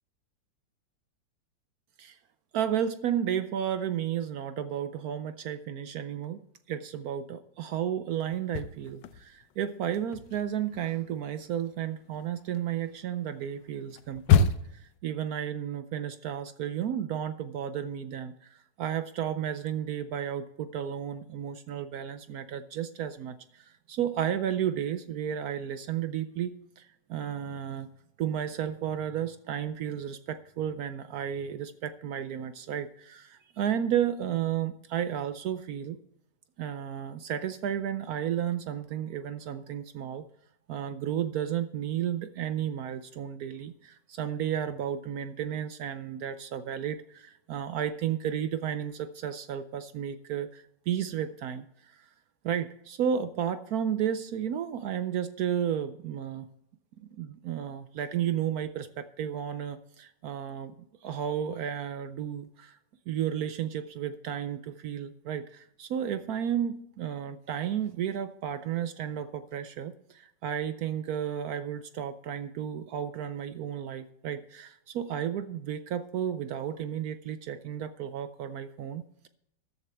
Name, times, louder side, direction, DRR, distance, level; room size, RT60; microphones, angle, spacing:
voice 1, 2.5-27.9 28.2-36.0 36.6-40.2 40.7-52.1 52.4-56.5 57.0-60.7 61.0-62.8 63.1-79.3, right 9 dB, 70° right, 12 dB, 0.9 m, -33 dB
sound 1, 8.3-9.5 9.8-14.9, left 6 dB, 90° left, 1.4 m, -28 dB
13.5 x 11.0 x 3.4 m, 0.76 s
omnidirectional pair, 2.0 m